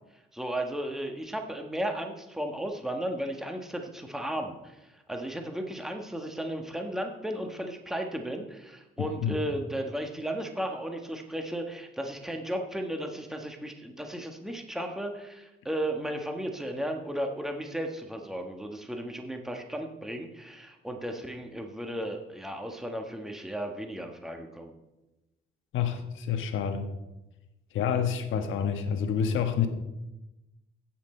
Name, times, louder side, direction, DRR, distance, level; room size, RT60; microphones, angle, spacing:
voice 1, 0.3-24.7, right 1 dB, ahead, 3 dB, 1.4 m, -35 dB
voice 2, 9.0-9.4 25.7-26.8 27.7-29.7, left 7 dB, 80° left, 6 dB, 1.3 m, -28 dB
16.5 x 6.0 x 4.4 m, 1.0 s
cardioid pair, 90°, 20 cm